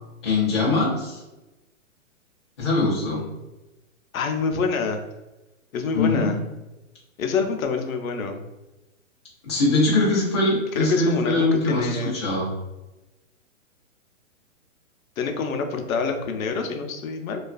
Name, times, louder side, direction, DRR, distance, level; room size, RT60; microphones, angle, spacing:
voice 1, 0.2-1.2 2.6-3.2 5.9-6.3 9.4-12.5, left 2 dB, 20° left, -8 dB, 0.4 m, -22 dB
voice 2, 4.1-5.0 5.7-6.4 7.2-8.4 10.8-12.2 15.2-17.4, left 5 dB, 90° left, 5 dB, 0.6 m, -26 dB
2.3 x 2.3 x 2.3 m, 1.0 s
hypercardioid pair, 165°, 40 cm